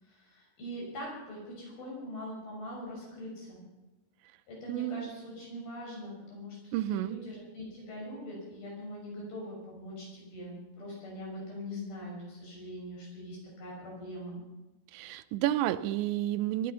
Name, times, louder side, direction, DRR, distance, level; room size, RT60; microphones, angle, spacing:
voice 1, 0.0-3.6 4.5-14.4, equal, 55° left, -3 dB, 7.9 m, -42 dB
voice 2, 4.7-5.1 6.7-7.2 14.9-16.7, right 13 dB, 85° right, 15 dB, 2.9 m, -31 dB
22.0 x 11.0 x 5.6 m, 1.1 s
omnidirectional pair, 5.1 m